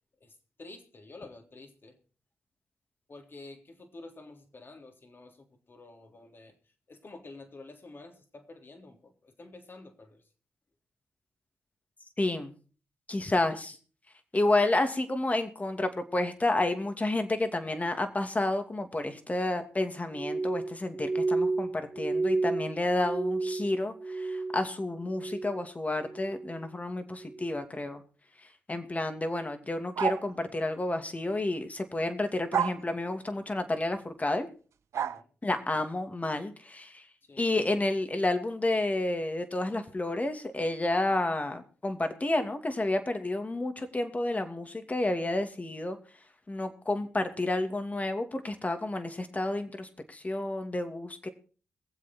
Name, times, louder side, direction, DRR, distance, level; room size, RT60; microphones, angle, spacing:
voice 1, 0.2-2.0 3.1-6.5 6.9-10.2 34.9-35.3 35.5-35.9 37.3-37.4, left 2 dB, 45° left, 5 dB, 3.4 m, -49 dB
voice 2, 12.2-12.6 13.1-13.8 14.3-28.0 28.7-34.5 35.4-37.1 37.4-46.0 46.5-51.3, left 2 dB, 30° left, 7 dB, 2.6 m, -30 dB
Glass, 20.1-24.7 25.0-25.7 26.0-26.6 27.2-27.5, right 3 dB, 35° right, 0.6 m, -32 dB
sound 1, 30.0-30.3 32.5-32.8 34.9-35.2, right 8 dB, 70° right, 0.6 m, -28 dB
22.0 x 7.8 x 4.5 m, 0.40 s
supercardioid pair, 45°, 5 cm